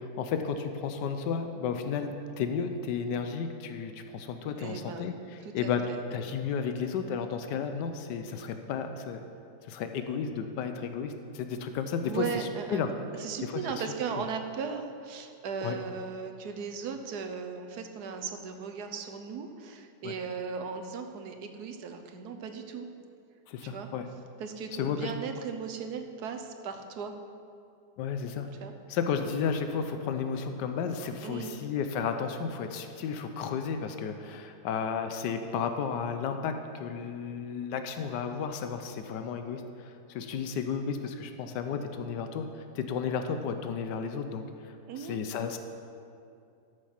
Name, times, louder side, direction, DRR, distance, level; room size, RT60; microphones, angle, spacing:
voice 1, 0.0-9.2 9.6-12.9 13.5-13.6 15.6-15.8 20.0-20.1 23.5-24.0 24.8-25.1 28.0-28.5 28.9-45.6, left 6 dB, 90° left, 7 dB, 1.3 m, -33 dB
voice 2, 4.6-5.1 5.4-6.0 12.1-12.8 13.2-22.9 23.6-23.9 24.4-27.1 28.6-28.7 31.2-31.6 44.9-45.2, right 6 dB, 70° right, 6 dB, 1.4 m, -37 dB
13.0 x 6.6 x 5.8 m, 2.5 s
omnidirectional pair, 1.8 m